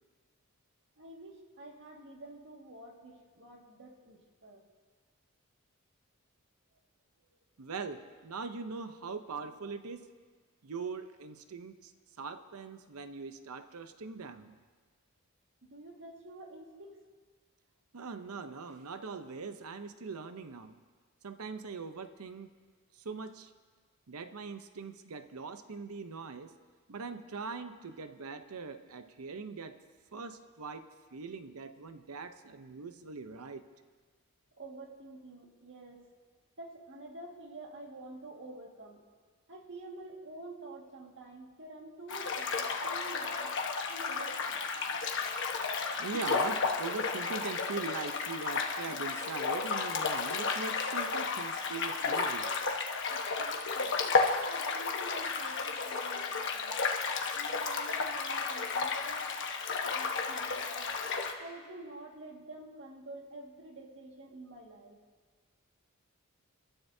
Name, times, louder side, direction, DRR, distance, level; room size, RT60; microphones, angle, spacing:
voice 1, 1.0-4.6 7.2-7.3 15.6-17.0 34.6-36.1 36.6-39.0 39.5-43.5 43.9-44.6 53.1-54.0 54.5-56.8 57.3-59.3 59.8-60.9 61.4-65.0, right 2 dB, 55° right, 1 dB, 1.9 m, -48 dB
voice 2, 7.6-10.1 10.6-11.9 12.2-14.5 17.9-20.8 21.2-22.5 23.0-23.5 24.1-26.5 26.9-29.8 30.1-33.7 46.0-52.5, right 4 dB, 75° right, 10 dB, 0.7 m, -41 dB
sound 1, 42.1-61.3, left 4 dB, 55° left, 1.2 m, -33 dB
29.5 x 12.5 x 2.7 m, 1.5 s
head